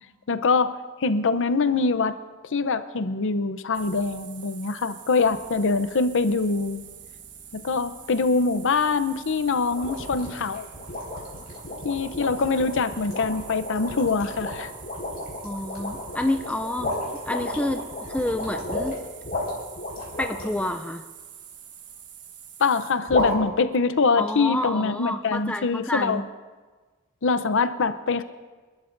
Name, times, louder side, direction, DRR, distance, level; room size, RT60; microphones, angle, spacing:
voice 1, 0.3-0.7 1.0-2.1 2.5-6.8 7.5-10.7 11.8-14.7 22.6-26.2 27.2-28.2, left 4 dB, 60° left, 12 dB, 0.6 m, -24 dB
Swamp Ambience, 3.7-22.9, right 8 dB, 55° right, 1.2 m, -46 dB
sound 1, 9.7-20.7 23.1-23.3, left 2 dB, 45° left, 4.6 m, -32 dB
voice 2, 15.4-16.9 17.2-19.0 20.2-21.0 24.2-26.2, left 1 dB, 5° left, 6 dB, 0.4 m, -29 dB
29.0 x 12.5 x 2.6 m, 1.3 s
head